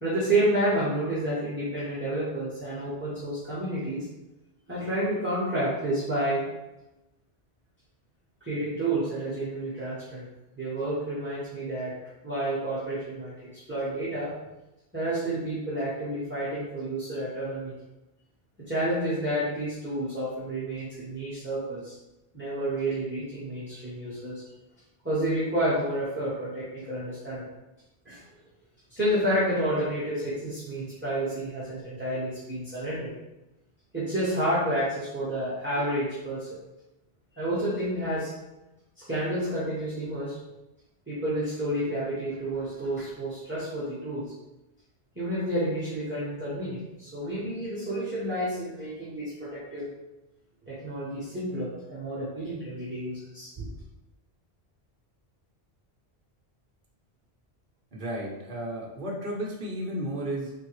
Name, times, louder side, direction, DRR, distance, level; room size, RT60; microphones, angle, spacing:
voice 1, 0.0-4.0 4.7-6.5 8.4-10.2 10.6-11.9 12.2-14.3 14.9-17.7 18.7-22.0 22.3-24.4 25.0-27.5 28.0-28.2 28.9-33.1 33.9-36.5 37.4-38.3 39.0-40.4 41.1-44.2 45.1-49.9 50.7-53.7, right 1 dB, 10° right, -10 dB, 1.1 m, -30 dB
voice 2, 57.9-60.5, right 1 dB, 50° right, -2 dB, 1.0 m, -33 dB
3.9 x 3.7 x 3.0 m, 0.98 s
omnidirectional pair, 1.1 m